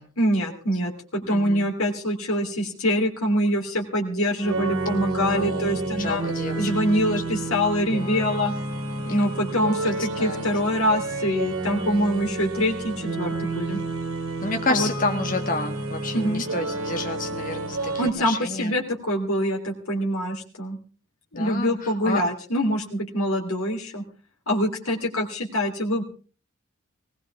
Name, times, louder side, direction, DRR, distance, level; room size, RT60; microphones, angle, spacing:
voice 1, 0.2-6.2 6.6-8.5 9.0-13.8 14.7-14.9 16.1-16.4 18.0-20.8 21.3-24.0 24.5-26.0, equal, 80° left, 0 dB, 3.2 m, -25 dB
voice 2, 1.2-1.7 5.4-7.4 9.6-9.8 10.2-10.5 14.4-18.7 21.3-22.2, left 3 dB, 40° left, 5 dB, 2.2 m, -30 dB
sound 1, 4.4-18.1, right 2 dB, 85° right, 3.5 m, -30 dB
19.5 x 18.0 x 3.5 m, 0.38 s
head